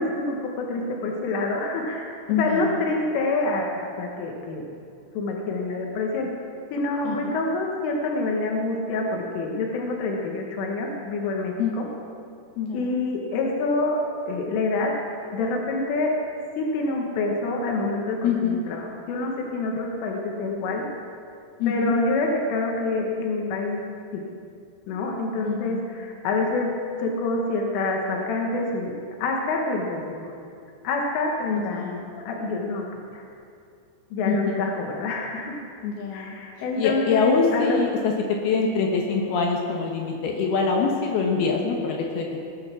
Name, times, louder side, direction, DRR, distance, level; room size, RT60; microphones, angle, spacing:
voice 1, 0.0-4.7 5.2-6.3 6.7-11.9 12.7-14.0 14.3-14.9 15.3-16.1 16.6-20.8 21.7-23.8 24.1-24.2 24.9-26.7 27.0-30.4 30.8-32.9 33.1-33.2 34.1-35.6 36.1-37.8, left 2 dB, 90° left, 0 dB, 4.2 m, -27 dB
voice 2, 2.3-2.7 7.0-7.3 11.6-11.8 12.6-13.0 18.2-18.6 21.6-22.0 25.4-25.8 31.5-32.1 34.2-34.7 35.8-36.4 36.8-42.3, left 5 dB, 70° left, 0 dB, 2.8 m, -25 dB
20.0 x 10.5 x 6.1 m, 2.4 s
omnidirectional pair, 5.5 m